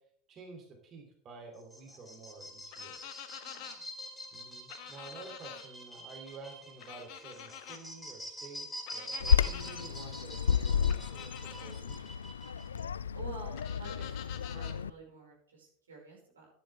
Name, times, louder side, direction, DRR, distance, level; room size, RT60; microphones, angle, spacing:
voice 1, 0.3-3.0 4.3-12.1, right 4 dB, 35° right, 2 dB, 3.0 m, -50 dB
sound 1, 1.5-12.8, equal, 5° left, 3.2 m, -46 dB
sound 2, 2.7-3.8 4.7-5.6 6.8-7.8 8.9-9.8 10.9-11.7 13.6-14.8, left 10 dB, 50° left, 1.4 m, -47 dB
voice 2, 3.4-3.8 13.1-16.5, right 4 dB, 75° right, -2 dB, 5.6 m, -49 dB
Bird vocalization bird call bird song, 9.2-14.9, left 7 dB, 75° left, 0.3 m, -31 dB
13.5 x 10.5 x 3.5 m, 0.63 s
figure-of-eight pair, 80°, 0 cm